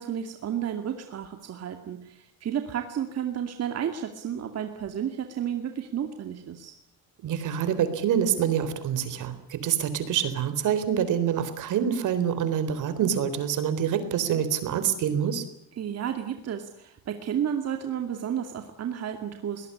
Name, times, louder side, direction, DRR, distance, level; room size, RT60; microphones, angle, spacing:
voice 1, 0.0-6.8 15.8-19.7, right 9 dB, 50° right, 6 dB, 2.4 m, -32 dB
voice 2, 7.2-15.4, right 8 dB, 70° right, 12 dB, 3.9 m, -26 dB
22.0 x 19.5 x 9.8 m, 0.77 s
cardioid pair, 130°, 32 cm